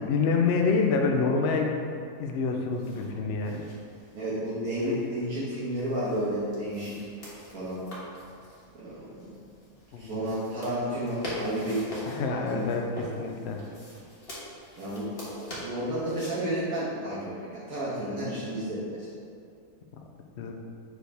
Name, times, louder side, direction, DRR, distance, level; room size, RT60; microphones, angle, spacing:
voice 1, 0.0-1.7 2.2-3.7 9.9-10.2 12.1-13.6 20.4-20.5, left 4 dB, 60° left, 2 dB, 0.7 m, -27 dB
sound 1, 2.6-16.3, equal, 40° left, 1.6 m, -44 dB
voice 2, 4.1-7.1 7.5-7.8 8.7-9.3 10.0-11.9 12.3-12.6 14.8-19.1, right 1 dB, 75° right, -9 dB, 1.7 m, -32 dB
6.0 x 5.0 x 3.4 m, 2.4 s
omnidirectional pair, 1.6 m